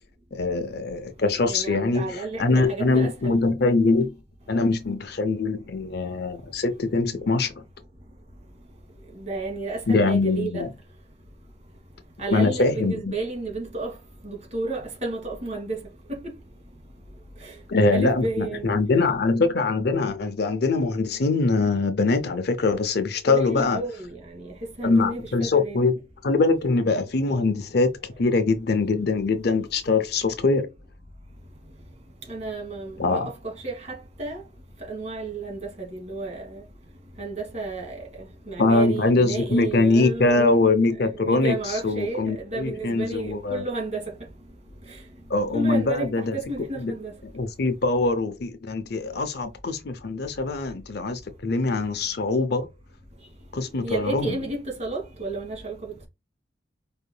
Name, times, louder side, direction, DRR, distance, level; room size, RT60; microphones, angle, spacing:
voice 1, 0.3-4.2 4.5-7.5 9.9-10.7 12.3-13.0 17.7-23.8 24.8-25.9 26.2-30.7 33.0-33.3 38.6-41.6 41.8-43.6 45.3-46.4 46.8-46.9 47.3-52.7 53.5-54.4, left 3 dB, 55° left, 0.6 m, -23 dB
voice 2, 1.4-3.4 9.1-10.6 12.2-13.9 14.2-15.8 16.1-16.3 17.4-17.5 17.9-18.8 23.2-25.8 32.3-34.4 34.9-36.6 37.2-40.7 41.0-44.1 44.9-45.0 45.5-47.1 53.8-56.1, right 3 dB, 35° right, 1.6 m, -32 dB
4.5 x 3.5 x 2.2 m
head